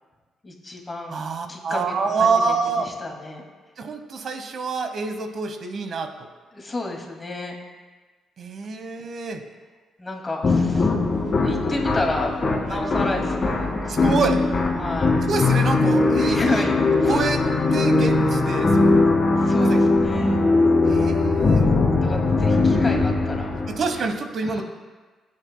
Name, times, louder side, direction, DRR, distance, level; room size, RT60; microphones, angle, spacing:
voice 1, 0.4-1.2 1.5-3.4 6.5-7.6 10.0-10.9 11.4-14.2 14.8-15.2 16.2-17.2 19.4-20.5 22.0-23.5 24.4-24.6, left 2 dB, 20° left, 0 dB, 2.2 m, -31 dB
voice 2, 1.1-2.9 3.8-6.3 8.4-9.4 12.7-12.8 13.9-14.4 15.2-16.7 17.0-19.0 19.6-19.8 20.9-21.7 23.7-24.6, right 4 dB, 55° right, 7 dB, 1.1 m, -26 dB
sound 1, 10.4-24.1, left 3 dB, 40° left, 1.7 m, -20 dB
14.5 x 8.9 x 2.2 m, 1.3 s
cardioid pair, 90°, 0 cm